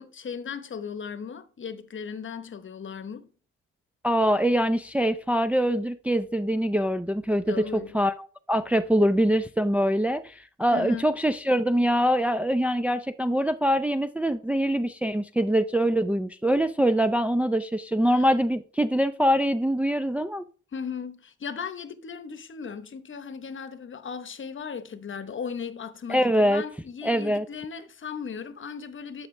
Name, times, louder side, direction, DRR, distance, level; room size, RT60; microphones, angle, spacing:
voice 1, 0.0-3.3 7.5-8.0 10.7-11.1 18.1-18.3 20.7-29.3, left 6 dB, 40° left, 1.0 m, -37 dB
voice 2, 4.0-20.4 26.1-26.6 27.0-27.5, equal, 5° right, 0.5 m, -24 dB
11.5 x 6.2 x 3.2 m
cardioid pair, 90°, 30 cm